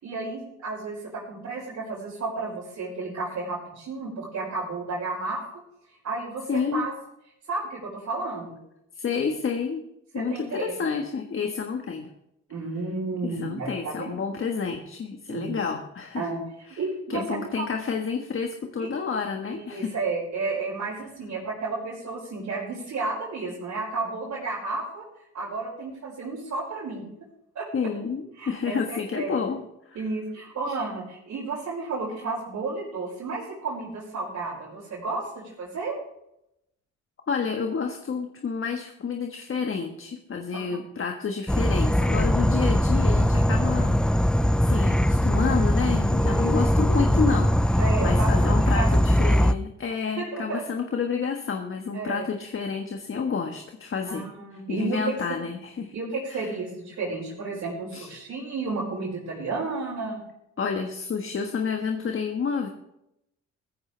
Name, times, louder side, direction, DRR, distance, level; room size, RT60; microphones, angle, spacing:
voice 1, 0.0-5.4 6.0-6.9 7.5-8.6 10.1-10.8 12.5-14.1 15.3-15.6 16.1-16.4 16.8-17.7 18.8-18.9 19.5-25.1 25.3-27.0 27.5-27.7 28.4-29.3 29.9-36.0 40.5-40.8 46.2-46.5 47.8-48.9 50.2-50.6 51.9-52.3 54.1-55.1 55.9-60.2, right 3 dB, 65° right, -7 dB, 5.1 m, -32 dB
voice 2, 6.5-6.9 8.9-9.8 10.1-12.1 13.2-16.3 16.7-16.8 17.1-20.0 27.7-30.0 37.3-44.0 44.6-54.3 54.7-55.9 56.3-56.5 57.9-58.1 60.6-62.7, left 5 dB, 45° left, 4 dB, 1.5 m, -29 dB
Insect / Frog, 41.5-49.5, equal, 5° left, 0.5 m, -21 dB
15.5 x 14.5 x 3.4 m, 0.82 s
cardioid pair, 90°, 30 cm